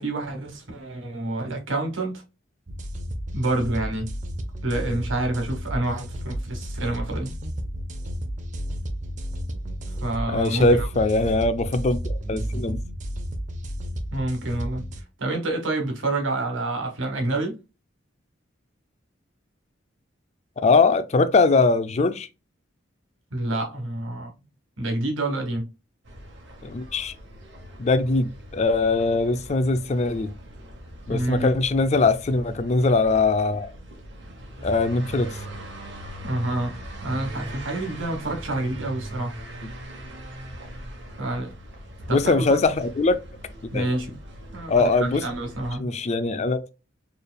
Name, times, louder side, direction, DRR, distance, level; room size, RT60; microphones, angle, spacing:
voice 1, 0.0-2.2 3.3-4.1 4.6-7.3 10.0-10.9 14.1-14.8 15.2-17.5 23.3-24.3 24.8-25.7 31.1-31.5 36.2-39.3 41.2-41.5 42.1-42.6 43.7-44.1 44.5-45.9, right 2 dB, 85° right, 1.3 m, -28 dB
sound 1, 2.7-15.0, equal, 40° right, 0.6 m, -32 dB
voice 2, 10.3-12.8 20.6-22.3 26.6-27.1 27.8-30.3 31.1-33.7 34.6-35.4 42.1-43.2 43.7-43.9 44.7-45.2 45.8-46.7, left 3 dB, 35° left, 0.4 m, -21 dB
sound 2, 26.0-45.8, right 1 dB, 60° right, 1.1 m, -40 dB
4.5 x 3.3 x 2.2 m
head